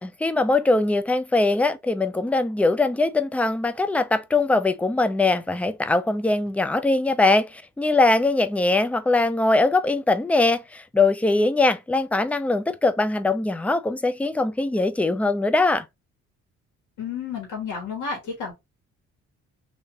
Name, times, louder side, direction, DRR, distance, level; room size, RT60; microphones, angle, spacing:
voice 1, 0.0-15.9, left 2 dB, 5° left, 0.4 m, -21 dB
voice 2, 17.0-18.5, left 5 dB, 85° left, 1.5 m, -31 dB
3.2 x 2.7 x 3.5 m
cardioid pair, 90°, 30 cm